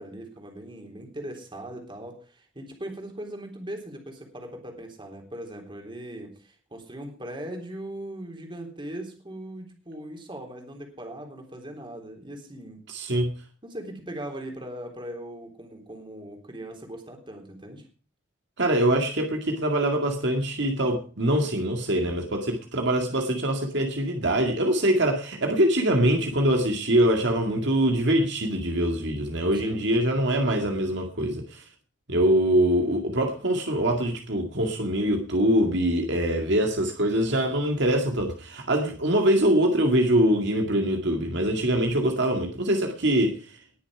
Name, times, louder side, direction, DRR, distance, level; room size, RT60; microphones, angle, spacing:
voice 1, 0.0-12.8 13.6-17.8 29.5-29.9, right 1 dB, 25° right, 3.5 m, -39 dB
voice 2, 12.9-13.3 18.6-31.6 32.1-43.4, right 1 dB, 65° right, 2.2 m, -23 dB
20.0 x 7.1 x 4.9 m
head